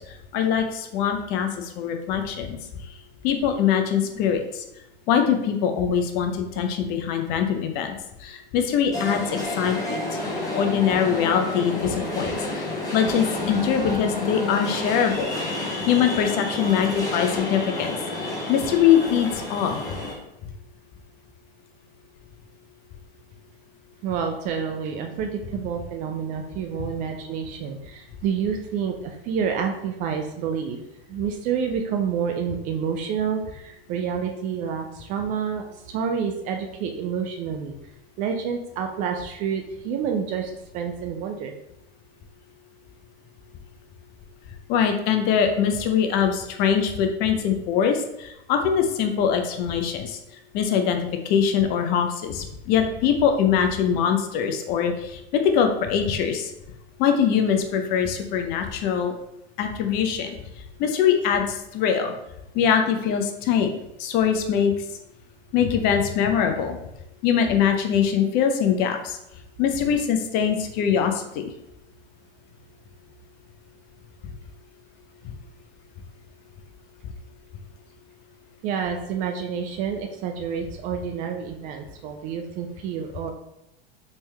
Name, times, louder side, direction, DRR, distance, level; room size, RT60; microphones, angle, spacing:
voice 1, 0.3-2.6 3.2-4.6 5.1-7.9 8.2-10.2 10.5-15.3 15.9-19.8 44.7-50.2 50.5-51.0 51.2-56.5 57.0-59.1 59.6-60.4 60.8-62.1 62.5-63.7 64.0-64.7 65.5-66.8 67.2-69.2 69.6-71.5 75.2-75.3, left 8 dB, 30° left, 6 dB, 0.5 m, -23 dB
sound 1, 8.9-20.1, left 2 dB, 10° left, 1.1 m, -29 dB
voice 2, 24.0-30.8 31.1-37.7 38.2-41.6 78.6-83.3, right 7 dB, 25° right, 4 dB, 0.4 m, -28 dB
4.3 x 3.2 x 3.2 m, 0.84 s
figure-of-eight pair, 85°, 31 cm